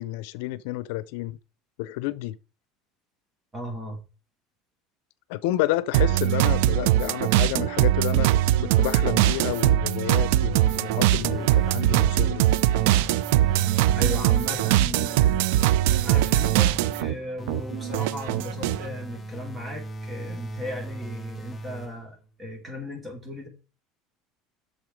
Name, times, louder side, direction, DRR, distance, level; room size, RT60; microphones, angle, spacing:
voice 1, 0.0-1.4 1.8-2.4 5.3-8.3 8.6-12.6, left 16 dB, 75° left, 0.6 m, -30 dB
voice 2, 3.5-4.0 14.0-15.5 16.0-23.5, left 1 dB, 15° right, 4.1 m, -36 dB
sound 1, 5.9-17.1 17.5-18.9, right 13 dB, 80° right, 0.5 m, -21 dB
sound 2, 10.5-12.2 12.6-15.1 15.8-22.2, right 1 dB, 15° left, 1.2 m, -38 dB
8.8 x 6.6 x 4.8 m
cardioid pair, 140°, 0 cm